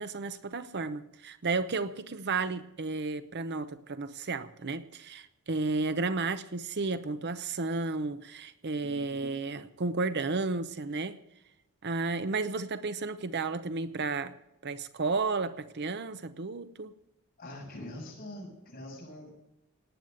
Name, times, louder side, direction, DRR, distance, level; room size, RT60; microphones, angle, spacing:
voice 1, 0.0-11.2 11.8-14.3 14.6-16.9, right 3 dB, 50° right, 12 dB, 0.8 m, -33 dB
voice 2, 17.4-19.3, left 1 dB, 40° left, -1 dB, 7.0 m, -43 dB
18.0 x 9.0 x 6.6 m, 0.84 s
head